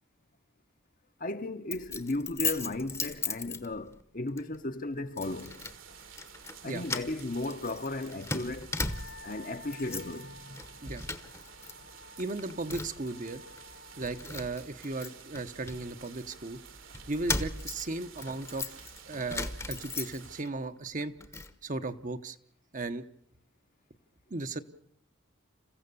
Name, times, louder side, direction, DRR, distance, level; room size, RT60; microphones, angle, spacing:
voice 1, 1.2-5.6 6.6-8.7 9.2-10.6, left 2 dB, 40° left, 1.0 m, -35 dB
Keys jangling, 1.7-4.0 4.4-4.6 5.2-5.8 6.1-6.6 6.8-9.3 9.7-10.2 10.5-11.7 12.0-13.1 13.6-13.7 14.0-16.4 16.9-20.5 20.9-21.5, left 3 dB, 15° left, 1.0 m, -37 dB
sound 1, 5.2-20.4, right 6 dB, 75° right, 2.5 m, -51 dB
Wind instrument woodwind instrument, 8.7-14.3, left 4 dB, 65° left, 2.1 m, -53 dB
voice 2, 12.2-13.4 14.0-16.6 17.1-18.8 19.1-21.1 21.6-22.4 22.7-23.0 24.3-24.6, right 2 dB, 40° right, 1.0 m, -36 dB
28.0 x 15.5 x 6.9 m
head